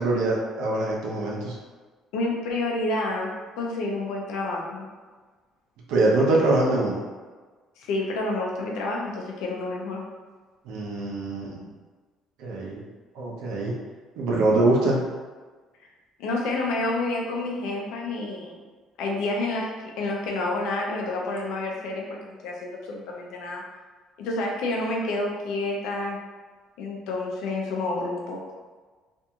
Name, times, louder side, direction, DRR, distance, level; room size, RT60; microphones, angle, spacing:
voice 1, 0.0-1.6 5.9-7.0 10.6-11.7 12.4-12.8 13.1-13.8 14.2-15.0, right 2 dB, 85° right, -3 dB, 0.6 m, -23 dB
voice 2, 2.1-3.3 3.6-4.9 7.8-10.0 16.2-18.6 19.0-19.7 20.0-23.6 24.2-26.2 26.8-28.4, left 2 dB, 80° left, -1 dB, 0.5 m, -29 dB
2.8 x 2.6 x 2.3 m, 1.4 s
cardioid pair, 165°, 0 cm